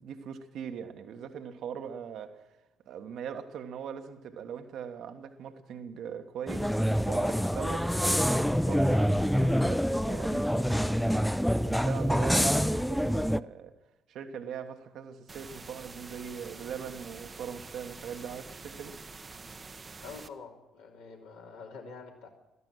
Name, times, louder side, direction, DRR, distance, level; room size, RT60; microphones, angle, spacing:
voice 1, 0.0-2.4 2.9-11.3 11.6-13.7 14.1-18.9, right 7 dB, 55° right, 1.3 m, -41 dB
sound 1, 6.5-13.4, equal, ahead, 0.4 m, -26 dB
sound 2, 15.3-20.3, right 4 dB, 30° right, 0.9 m, -46 dB
voice 2, 20.0-22.3, left 4 dB, 65° left, 2.9 m, -46 dB
17.0 x 13.5 x 6.2 m
figure-of-eight pair, 45°, 0 cm